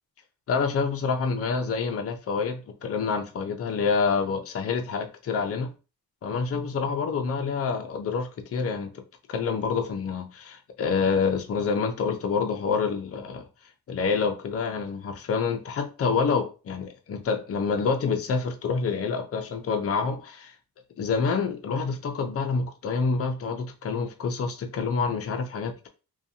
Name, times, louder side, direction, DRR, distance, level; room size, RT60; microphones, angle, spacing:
voice 1, 0.5-5.7 6.2-8.9 9.3-13.5 13.9-20.5 21.0-25.9, left 5 dB, 40° left, 0.4 m, -27 dB
2.5 x 2.2 x 2.7 m
wide cardioid pair, 155°, 38 cm